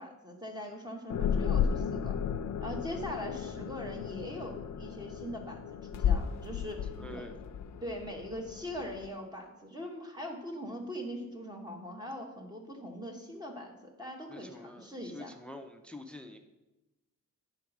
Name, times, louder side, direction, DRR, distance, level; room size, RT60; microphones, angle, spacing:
voice 1, 0.0-2.2 2.6-5.6 5.9-7.3 7.8-15.3, equal, 15° right, 1 dB, 0.9 m, -41 dB
sound 1, 1.1-9.1, left 7 dB, 60° left, 0.5 m, -34 dB
voice 2, 7.0-7.3 14.3-16.4, left 1 dB, 5° left, 7 dB, 0.4 m, -47 dB
9.2 x 3.9 x 5.9 m, 1.0 s
wide cardioid pair, 165°, 31 cm